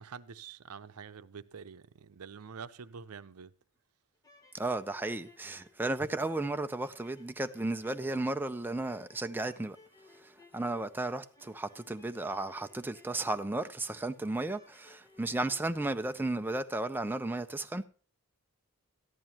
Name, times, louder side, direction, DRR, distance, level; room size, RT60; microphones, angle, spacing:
voice 1, 0.0-3.5, right 6 dB, 90° right, 0.6 m, -46 dB
sound 1, 4.1-16.5, left 2 dB, 15° left, 1.3 m, -62 dB
voice 2, 4.5-9.8 10.1-17.9, right 2 dB, 10° right, 0.4 m, -34 dB
14.0 x 10.5 x 2.9 m
head